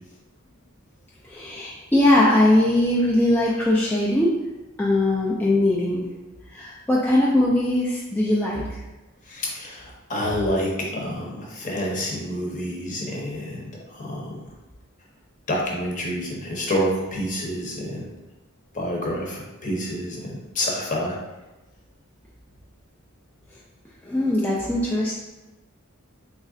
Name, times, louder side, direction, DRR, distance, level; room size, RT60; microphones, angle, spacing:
voice 1, 1.2-4.3 4.8-6.1 6.5-8.8 24.0-25.1, left 1 dB, 10° left, -5 dB, 0.3 m, -20 dB
voice 2, 9.3-14.3 15.5-18.1 18.7-21.2, equal, 35° left, -2 dB, 0.7 m, -28 dB
3.1 x 2.4 x 3.7 m, 1.1 s
head